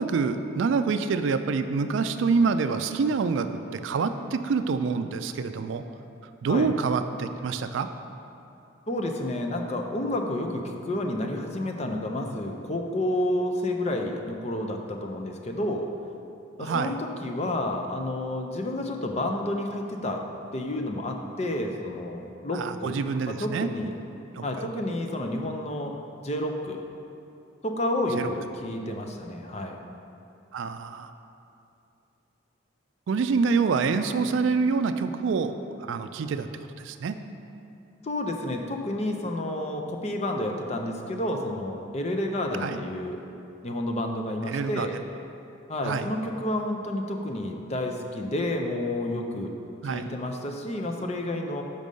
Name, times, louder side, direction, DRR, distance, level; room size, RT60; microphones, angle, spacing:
voice 1, 0.0-5.8 6.4-7.9 16.6-16.9 22.5-23.7 24.3-24.7 28.1-28.3 30.5-31.1 33.1-35.5 35.8-36.5 36.8-37.2 42.6-42.8 44.4-44.9 45.8-46.1 49.8-50.1, right 5 dB, 65° right, 10 dB, 0.3 m, -26 dB
voice 2, 8.9-15.9 16.6-20.2 20.5-23.0 23.4-23.9 24.4-25.9 26.2-26.8 27.6-29.8 38.0-43.2 43.6-44.9 45.7-49.5 49.8-51.6, left 1 dB, 30° left, 3 dB, 0.5 m, -30 dB
6.3 x 5.2 x 5.3 m, 2.7 s
head